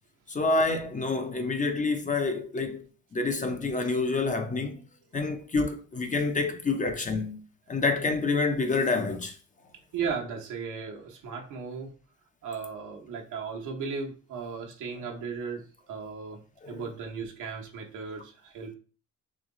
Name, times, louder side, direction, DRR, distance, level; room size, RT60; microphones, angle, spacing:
voice 1, 0.3-2.8 3.1-4.9 5.1-7.4 7.7-9.4 16.6-16.8, left 3 dB, 25° left, 0.6 m, -27 dB
voice 2, 9.9-11.9 12.4-15.6 15.9-16.4 16.7-18.7, right 5 dB, 85° right, 1.1 m, -36 dB
3.2 x 2.9 x 3.7 m
cardioid pair, 90°, 30 cm